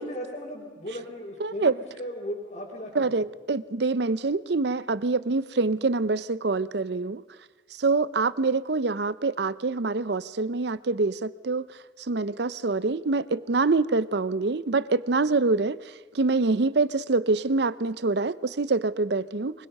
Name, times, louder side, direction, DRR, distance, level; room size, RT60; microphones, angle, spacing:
voice 1, 0.0-3.2, equal, 40° left, 4.2 m, -37 dB
voice 2, 1.4-1.7 2.9-7.2 7.8-11.7 12.1-15.8 16.1-19.7, right 3 dB, 60° right, 0.6 m, -25 dB
24.0 x 22.0 x 5.4 m
head